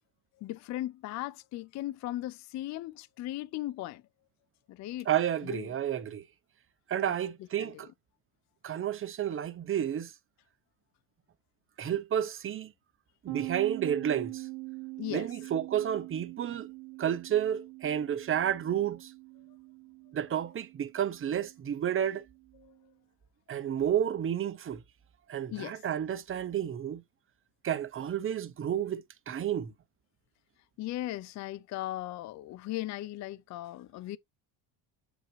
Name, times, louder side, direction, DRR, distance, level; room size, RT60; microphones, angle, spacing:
voice 1, 0.4-4.0 4.7-5.1 5.4-5.7 7.1-7.2 7.6-7.7 15.0-15.3 22.6-22.7 25.5-25.8 30.8-34.2, left 15 dB, 40° left, 0.4 m, -37 dB
voice 2, 5.1-6.2 6.9-7.9 8.6-10.1 11.8-12.7 13.2-14.5 15.1-16.7 17.0-19.1 20.1-22.2 23.5-24.8 25.3-27.0 27.6-29.7, right 10 dB, 25° right, 0.8 m, -31 dB
sound 1, 13.3-22.7, right 22 dB, 65° right, 1.2 m, -44 dB
7.4 x 5.0 x 3.1 m
cardioid pair, 125°, 47 cm